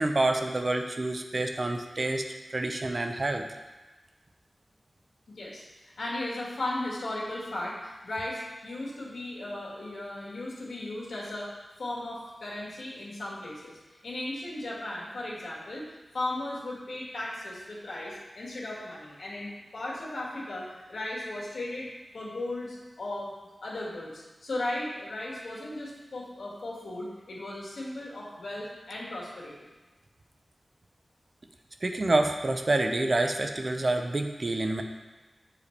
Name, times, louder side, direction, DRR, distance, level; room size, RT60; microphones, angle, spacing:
voice 1, 0.0-3.4 31.8-34.8, right 2 dB, 40° right, 4 dB, 0.6 m, -27 dB
voice 2, 5.3-5.6 6.0-11.5 11.8-13.7 14.0-15.9 16.1-23.3 23.6-29.7, left 1 dB, 80° left, -5 dB, 1.9 m, -36 dB
8.6 x 4.8 x 3.3 m, 1.2 s
wide cardioid pair, 110°, 0 cm